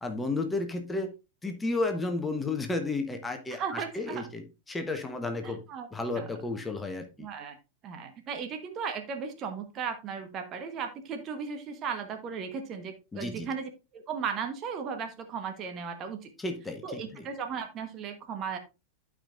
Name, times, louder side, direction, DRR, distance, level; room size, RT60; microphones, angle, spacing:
voice 1, 0.0-1.1 1.4-5.6 5.9-7.3 13.1-13.5 16.4-17.3, left 2 dB, 10° left, 6 dB, 1.0 m, -32 dB
voice 2, 3.5-4.3 5.4-5.9 6.1-6.3 7.2-7.6 7.8-16.3 16.8-18.6, right 6 dB, 30° right, 6 dB, 1.2 m, -36 dB
12.0 x 4.9 x 2.5 m, 0.28 s
figure-of-eight pair, 90°, 0 cm